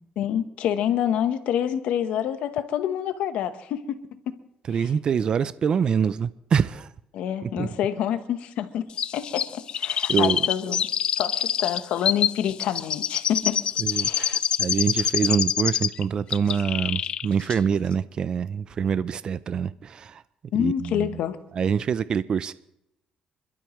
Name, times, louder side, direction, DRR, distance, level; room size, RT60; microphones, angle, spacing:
voice 1, 0.2-4.2 7.1-8.9 9.1-10.8 11.2-13.6 13.9-14.4 20.5-21.4, left 10 dB, 75° left, 1.1 m, -27 dB
voice 2, 4.7-6.9 7.4-7.8 10.1-10.4 13.8-20.2 20.6-21.2 21.5-22.5, right 7 dB, 40° right, 0.5 m, -25 dB
Chirp tweet, 9.0-16.0 16.3-17.3 17.5-17.6, left 8 dB, 45° left, 0.4 m, -26 dB
28.0 x 12.5 x 3.2 m
cardioid pair, 130°, 2 cm